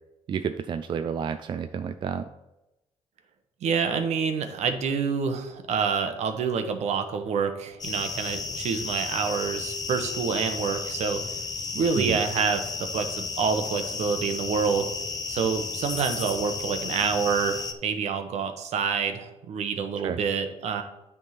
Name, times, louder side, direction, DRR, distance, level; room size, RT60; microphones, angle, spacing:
voice 1, 0.3-2.3 12.0-12.2 20.0-20.2, right 7 dB, 40° right, 9 dB, 0.4 m, -30 dB
voice 2, 3.6-11.2 11.7-14.9 15.3-20.8, right 6 dB, 70° right, 7 dB, 0.9 m, -27 dB
sound 1, 7.8-17.7, left 4 dB, 35° left, 0.7 m, -33 dB
9.4 x 3.6 x 5.7 m, 0.93 s
cardioid pair, 110°, 12 cm